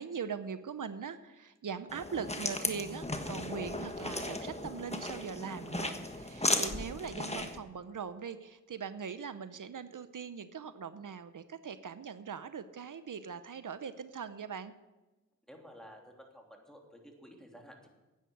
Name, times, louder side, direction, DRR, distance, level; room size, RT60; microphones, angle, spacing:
voice 1, 0.0-14.7, right 6 dB, 80° right, 12 dB, 0.7 m, -41 dB
sound 1, 1.9-7.6, left 1 dB, 20° left, 1.4 m, -36 dB
voice 2, 15.5-17.9, equal, ahead, 1 dB, 2.9 m, -53 dB
10.5 x 9.4 x 7.9 m, 1.1 s
wide cardioid pair, 45°, 31 cm